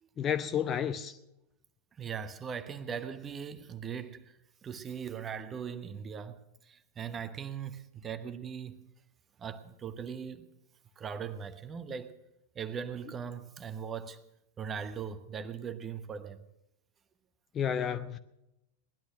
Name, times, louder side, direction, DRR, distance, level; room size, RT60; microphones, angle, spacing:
voice 1, 0.2-1.2 17.5-18.2, left 8 dB, 25° left, 0.7 m, -31 dB
voice 2, 2.0-4.4 4.6-8.9 9.4-10.5 11.0-12.2 12.5-14.2 14.6-16.4, right 7 dB, 25° right, 1.1 m, -40 dB
18.5 x 11.5 x 6.3 m
figure-of-eight pair, 90°, 0 cm